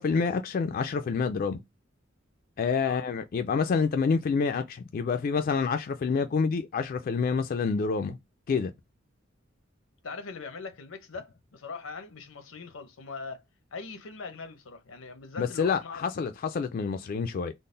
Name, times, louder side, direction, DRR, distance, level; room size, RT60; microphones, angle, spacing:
voice 1, 0.0-1.6 2.6-8.2 8.5-8.7 15.4-17.5, left 5 dB, 45° left, 0.3 m, -27 dB
voice 2, 10.0-13.4 13.7-16.1, left 4 dB, 90° left, 0.8 m, -41 dB
3.8 x 2.0 x 3.8 m
head